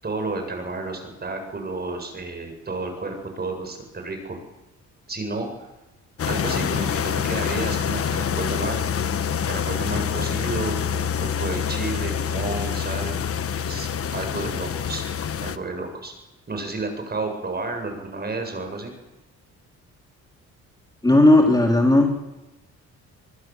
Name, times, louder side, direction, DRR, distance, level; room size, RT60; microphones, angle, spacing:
voice 1, 0.0-4.4 5.1-5.5 6.3-8.8 9.5-13.2 13.6-15.0 15.4-16.1 16.5-18.9, right 3 dB, 30° right, 5 dB, 8.0 m, -31 dB
sound 1, 6.2-15.6, left 7 dB, 50° left, 1.3 m, -26 dB
voice 2, 21.0-22.1, left 1 dB, 15° left, 1 dB, 3.8 m, -15 dB
25.0 x 21.0 x 7.8 m, 1.0 s
cardioid pair, 90°, 30 cm